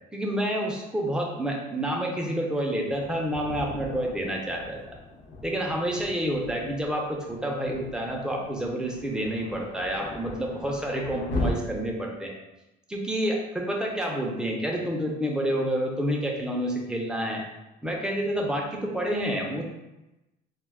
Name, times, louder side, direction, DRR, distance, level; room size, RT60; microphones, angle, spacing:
voice 1, 0.1-5.0 5.4-12.4 12.9-17.4 17.8-19.6, right 1 dB, 5° right, -1 dB, 0.5 m, -29 dB
Thunder, 2.9-11.5, left 2 dB, 90° left, 0.6 m, -38 dB
2.3 x 2.2 x 3.3 m, 0.97 s
cardioid pair, 110°, 17 cm